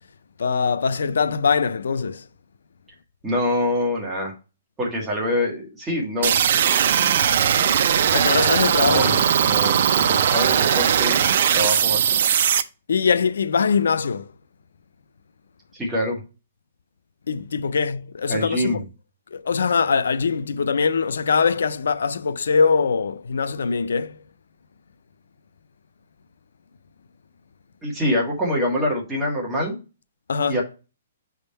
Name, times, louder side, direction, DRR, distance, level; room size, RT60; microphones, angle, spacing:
voice 1, 0.4-2.2 8.1-9.2 12.9-14.3 17.3-18.8 19.3-24.2 30.3-30.6, left 5 dB, 85° left, 0.4 m, -22 dB
voice 2, 3.2-4.3 4.8-6.3 8.8-11.2 11.5-12.2 15.7-16.2 18.3-18.8 27.8-29.8 30.4-30.6, left 1 dB, 5° right, 1.5 m, -25 dB
sound 1, 6.2-12.6, right 8 dB, 45° right, 0.4 m, -19 dB
6.0 x 3.6 x 5.4 m
hypercardioid pair, 175°, 0 cm